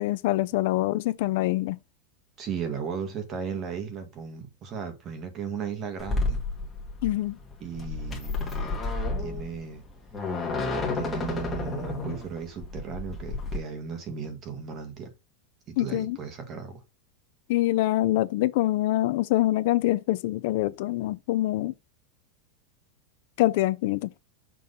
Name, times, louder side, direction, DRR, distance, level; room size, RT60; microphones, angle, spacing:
voice 1, 0.0-1.8 7.0-7.4 15.8-16.2 17.5-21.7 23.4-24.1, left 16 dB, 60° left, 0.4 m, -25 dB
voice 2, 2.4-6.4 7.6-8.8 9.2-9.8 10.9-15.1 15.7-16.8, right 6 dB, 30° right, 1.7 m, -36 dB
sound 1, 6.0-13.6, left 3 dB, 10° left, 1.6 m, -31 dB
6.1 x 3.6 x 5.4 m
supercardioid pair, 160°, 0 cm